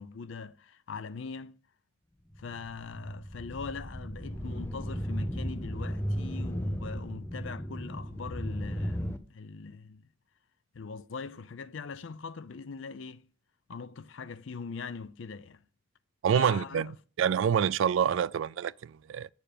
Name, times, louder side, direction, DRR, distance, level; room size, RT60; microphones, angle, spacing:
voice 1, 0.0-1.6 2.4-10.1 10.7-13.3 13.7-15.6 16.3-16.9, left 5 dB, 65° left, 0.5 m, -41 dB
sound 1, 2.3-9.2, equal, 10° left, 0.6 m, -35 dB
voice 2, 16.2-16.9 17.2-19.3, right 8 dB, 70° right, 0.3 m, -27 dB
8.7 x 6.9 x 5.0 m
head